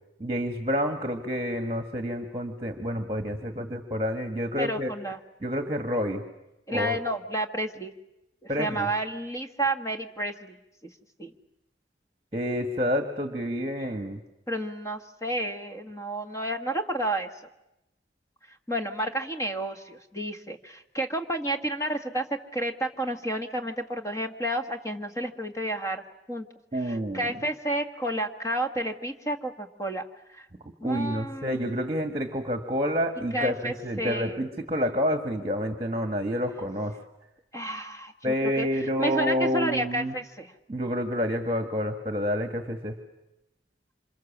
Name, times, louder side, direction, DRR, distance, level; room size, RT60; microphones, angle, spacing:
voice 1, 0.2-4.9 5.4-6.2 6.7-7.0 8.5-8.9 12.3-14.2 26.7-27.3 30.8-37.0 38.2-40.1 40.7-43.0, equal, 25° right, 6 dB, 1.8 m, -28 dB
voice 2, 4.6-5.2 6.7-7.9 8.4-10.6 11.2-11.3 14.5-17.3 18.5-26.0 26.3-26.5 26.7-30.0 30.3-30.5 30.8-31.7 33.3-34.4 37.5-40.5, right 1 dB, 20° left, 4 dB, 1.7 m, -31 dB
27.5 x 26.5 x 7.4 m, 0.91 s
head